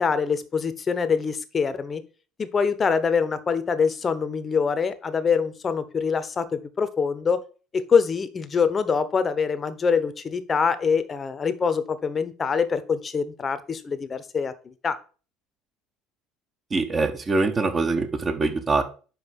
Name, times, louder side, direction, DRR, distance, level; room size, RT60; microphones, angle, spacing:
voice 1, 0.0-2.0 2.4-7.4 7.7-15.0, left 5 dB, 35° left, 13 dB, 0.9 m, -24 dB
voice 2, 16.7-18.8, right 3 dB, 30° right, 7 dB, 1.4 m, -23 dB
5.5 x 4.7 x 6.2 m, 0.37 s
hypercardioid pair, 70°, 0 cm